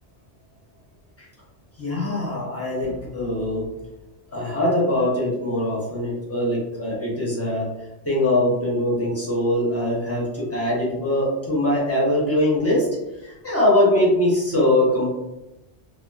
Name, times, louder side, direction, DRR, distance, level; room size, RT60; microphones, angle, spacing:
voice 1, 1.8-3.6 4.3-7.7 8.0-12.9 13.2-15.1, left 1 dB, 15° left, -6 dB, 0.8 m, -22 dB
3.0 x 2.4 x 2.3 m, 0.96 s
omnidirectional pair, 1.2 m